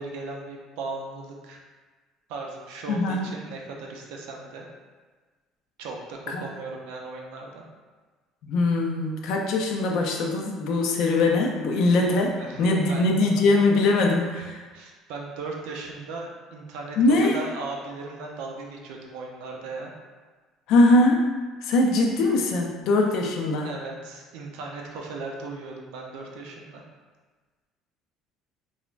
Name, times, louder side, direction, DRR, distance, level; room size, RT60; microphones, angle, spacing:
voice 1, 0.0-1.6 2.3-4.6 5.8-7.6 12.4-13.1 14.4-14.5 14.7-19.9 23.6-26.8, right 3 dB, 85° right, 0 dB, 0.4 m, -37 dB
voice 2, 2.9-3.3 6.3-6.4 8.4-14.6 17.0-17.4 20.7-21.3 21.6-23.7, left 2 dB, 60° left, 1 dB, 0.4 m, -22 dB
3.1 x 2.1 x 2.4 m, 1.4 s
cardioid pair, 160°, 0 cm